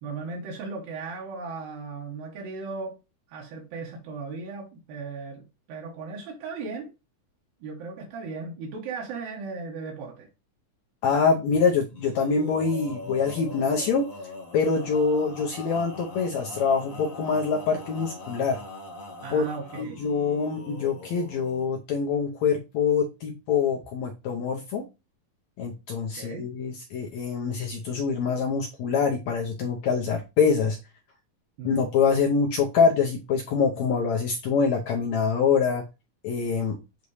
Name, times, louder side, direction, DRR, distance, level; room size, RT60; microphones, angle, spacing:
voice 1, 0.0-3.0 3.3-6.9 7.6-10.3 19.2-20.0 26.2-26.4 31.6-31.9, right 4 dB, 85° right, 3.0 m, -37 dB
voice 2, 11.0-14.0 14.5-18.6 19.3-19.5 19.8-24.8 25.6-30.8 31.6-35.8 36.2-36.8, left 5 dB, 70° left, 1.7 m, -25 dB
Male singing, 11.9-21.7, left 2 dB, 50° left, 0.9 m, -41 dB
8.2 x 2.8 x 4.7 m
omnidirectional pair, 4.0 m